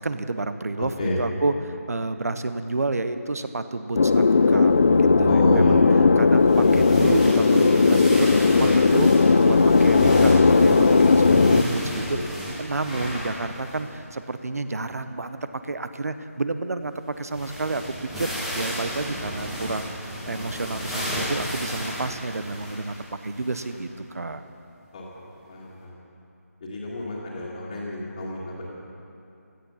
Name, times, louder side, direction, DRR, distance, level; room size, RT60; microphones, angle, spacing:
voice 1, 0.0-12.3 12.6-15.4 15.6-24.4, right 3 dB, 70° right, 10 dB, 1.0 m, -30 dB
sound 1, 4.0-11.6, left 4 dB, 45° left, 0.5 m, -17 dB
voice 2, 5.2-5.8 11.2-11.7 12.1-12.2 24.9-25.0 25.5-25.9 26.6-28.7, left 1 dB, 20° left, -10 dB, 2.0 m, -29 dB
sound 2, 6.5-13.9 14.2-14.3 16.8-16.9 17.1-23.8 24.4-24.5 25.6-25.7, equal, 5° right, 1.5 m, -34 dB
16.5 x 13.5 x 5.7 m, 2.7 s
figure-of-eight pair, 170°, 9 cm